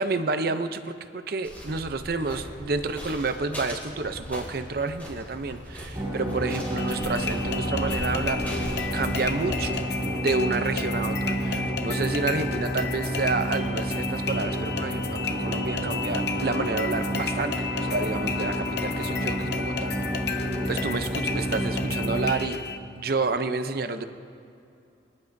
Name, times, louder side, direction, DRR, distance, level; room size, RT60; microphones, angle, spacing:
voice 1, 0.0-8.4 8.9-9.8 10.1-19.9 20.4-22.6 23.0-24.0, right 3 dB, 50° right, 9 dB, 0.6 m, -29 dB
sound 1, 1.4-9.8, equal, 10° left, 3.6 m, -38 dB
sound 2, 5.9-22.3, equal, 25° right, 3.3 m, -30 dB
sound 3, 6.8-22.8, left 5 dB, 60° left, 0.8 m, -34 dB
26.0 x 10.5 x 2.6 m, 2.6 s
head